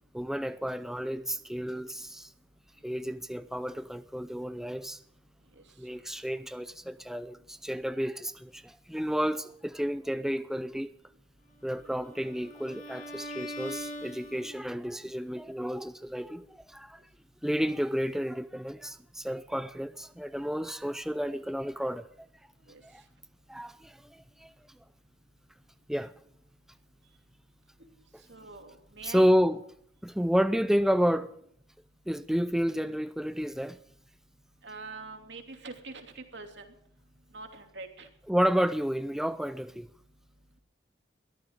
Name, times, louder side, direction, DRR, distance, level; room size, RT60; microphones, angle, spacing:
voice 1, 0.1-2.3 2.8-5.0 5.8-10.9 11.6-17.0 17.4-22.1 22.8-23.0 23.5-24.5 25.9-26.1 29.0-29.6 30.0-31.3 32.1-33.8 38.3-39.9, equal, 5° right, 0.5 m, -30 dB
Bowed string instrument, 11.7-14.8, equal, 50° left, 6.2 m, -42 dB
voice 2, 28.3-29.3 34.6-36.6 37.3-38.1, right 3 dB, 75° right, 2.9 m, -44 dB
22.0 x 14.0 x 3.7 m
head